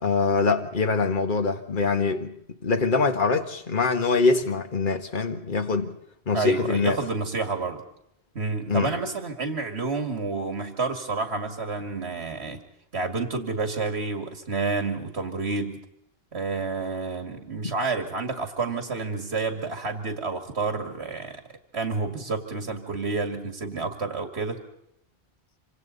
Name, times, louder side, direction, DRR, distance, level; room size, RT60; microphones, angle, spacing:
voice 1, 0.0-2.3 2.6-5.9 6.3-7.0 8.7-8.9, left 4 dB, 50° left, 5 dB, 1.7 m, -24 dB
voice 2, 6.3-7.8 8.3-12.6 12.9-15.8 16.3-21.4 21.7-24.6, right 4 dB, 80° right, 5 dB, 2.5 m, -29 dB
26.5 x 26.0 x 4.1 m, 0.75 s
omnidirectional pair, 1.1 m